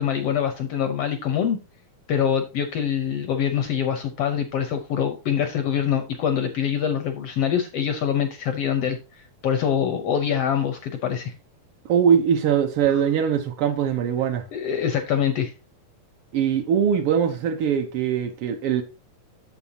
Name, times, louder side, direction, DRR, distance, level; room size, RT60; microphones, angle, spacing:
voice 1, 0.0-1.6 2.1-11.3 12.9-13.0 14.5-15.5, left 8 dB, 80° left, 1.3 m, -24 dB
voice 2, 11.9-14.4 16.3-18.8, right 8 dB, 85° right, 1.2 m, -21 dB
8.8 x 7.1 x 2.7 m
omnidirectional pair, 3.6 m